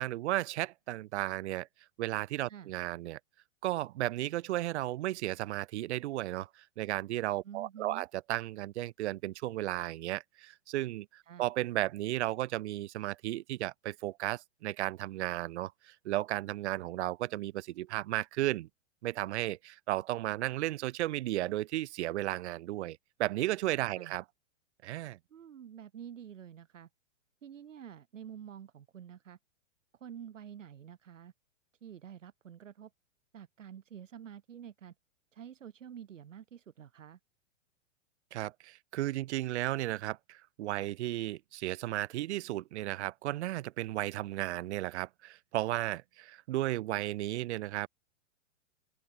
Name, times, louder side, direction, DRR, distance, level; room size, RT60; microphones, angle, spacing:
voice 1, 0.0-1.7 2.0-3.2 3.6-18.7 19.0-24.2 24.8-25.2 38.3-47.9, right 15 dB, 60° right, 0.7 m, -34 dB
voice 2, 7.4-8.1 11.2-11.5 23.9-24.2 25.3-26.9 27.4-29.4 29.9-31.3 31.8-32.9 33.3-34.9 35.3-37.2, right 9 dB, 80° right, 3.8 m, -48 dB
open air
hypercardioid pair, 125°, 37 cm